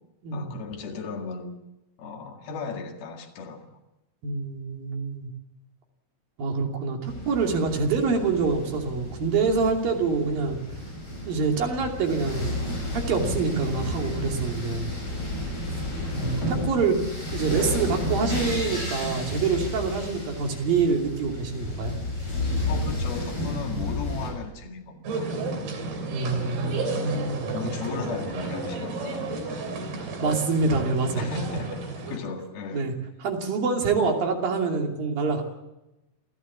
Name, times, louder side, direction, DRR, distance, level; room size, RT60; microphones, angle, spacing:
voice 1, 0.3-1.5 2.0-3.8 22.7-25.6 27.5-29.7 30.0-30.1 31.2-32.9, left 4 dB, 80° left, 1 dB, 4.0 m, -36 dB
voice 2, 4.2-5.3 6.4-10.6 11.3-12.6 12.9-14.9 16.1-17.0 17.3-22.0 26.1-27.7 30.2-31.3 32.7-32.9 33.2-35.4, right 4 dB, 65° right, 2 dB, 4.5 m, -26 dB
sound 1, 7.1-24.3, left 1 dB, 30° left, 7.8 m, -31 dB
sound 2, 25.0-32.2, right 3 dB, 85° right, 4.9 m, -32 dB
28.0 x 14.0 x 7.4 m, 0.93 s
omnidirectional pair, 4.4 m